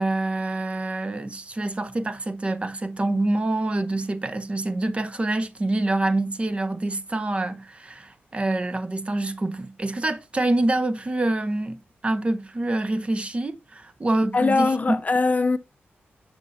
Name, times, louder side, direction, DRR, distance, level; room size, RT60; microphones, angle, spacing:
voice 1, 0.0-15.0, right 2 dB, 30° right, 0.7 m, -26 dB
voice 2, 14.3-15.6, left 3 dB, 35° left, 0.4 m, -21 dB
6.5 x 6.1 x 2.6 m
cardioid pair, 85°, 4 cm